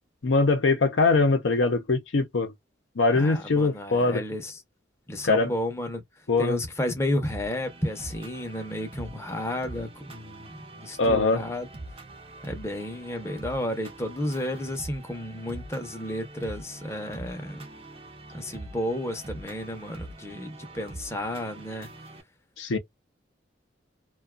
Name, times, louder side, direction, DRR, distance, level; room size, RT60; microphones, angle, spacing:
voice 1, 0.2-2.5 3.0-4.2 5.2-5.5 6.3-6.6 11.0-11.4 22.6-22.8, left 3 dB, 75° left, 0.6 m, -22 dB
voice 2, 3.1-4.6 5.1-11.7 12.4-17.6 18.3-21.9 22.7-22.8, left 1 dB, 15° left, 0.6 m, -32 dB
sound 1, 7.3-22.2, right 2 dB, 30° right, 0.5 m, -44 dB
2.5 x 2.3 x 2.3 m
head